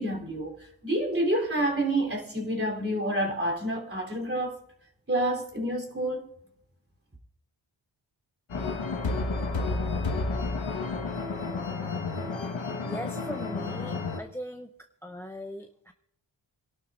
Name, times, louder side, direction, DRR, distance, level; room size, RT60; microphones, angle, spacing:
voice 1, 0.0-4.6 5.1-6.3, right 1 dB, 30° right, 3.4 m, -28 dB
sound 1, 8.5-14.2, left 3 dB, 75° left, 1.5 m, -31 dB
voice 2, 12.8-14.7 15.0-15.9, left 1 dB, 5° left, 0.5 m, -39 dB
26.0 x 12.0 x 2.5 m
wide cardioid pair, 75°, 47 cm